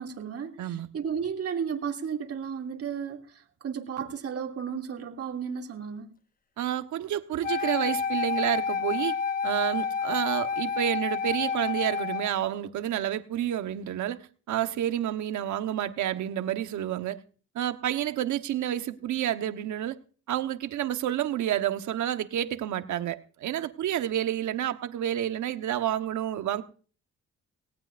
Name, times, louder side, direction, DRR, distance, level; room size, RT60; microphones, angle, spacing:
voice 1, 0.0-6.1, right 7 dB, 50° right, 2 dB, 2.7 m, -34 dB
voice 2, 6.6-9.2 9.4-14.2 14.5-17.2 17.5-20.0 20.3-26.6, right 11 dB, 75° right, 9 dB, 1.2 m, -29 dB
Wind instrument woodwind instrument, 7.4-12.3, left 6 dB, 30° left, 1.0 m, -29 dB
19.0 x 18.0 x 2.6 m, 0.41 s
cardioid pair, 90°, 30 cm